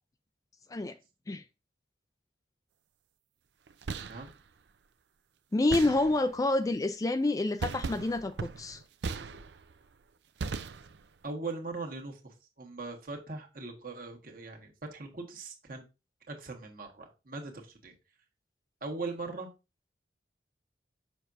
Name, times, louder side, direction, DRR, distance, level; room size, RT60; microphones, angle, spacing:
sound 1, 3.7-4.4 5.7-6.5 7.6-9.8 10.4-11.2, right 4 dB, 75° right, 0.5 m, -38 dB
voice 1, 5.5-8.8, left 2 dB, 20° left, 0.3 m, -28 dB
voice 2, 11.2-15.8 16.3-17.9 18.8-19.5, right 3 dB, 50° right, 1.6 m, -40 dB
7.0 x 5.9 x 2.6 m
head